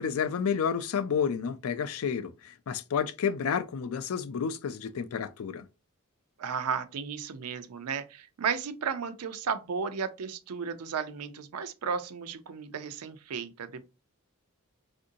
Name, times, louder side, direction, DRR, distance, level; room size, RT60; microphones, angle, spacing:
voice 1, 0.0-5.6, left 7 dB, 70° left, 0.4 m, -30 dB
voice 2, 6.4-13.8, right 6 dB, 85° right, 0.5 m, -34 dB
3.6 x 2.5 x 2.6 m
head